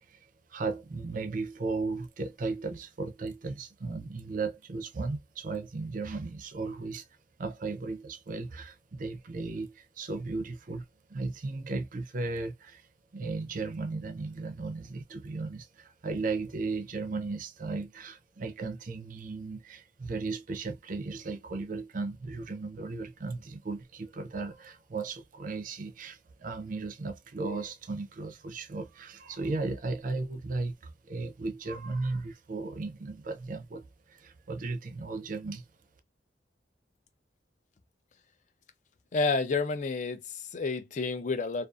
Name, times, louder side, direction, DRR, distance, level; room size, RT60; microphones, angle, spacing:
voice 1, 0.5-7.0 7.4-12.9 13.1-35.6, right 3 dB, 50° right, 0.5 m, -36 dB
voice 2, 39.1-41.7, left 4 dB, 45° left, 0.4 m, -30 dB
2.5 x 2.3 x 2.4 m
head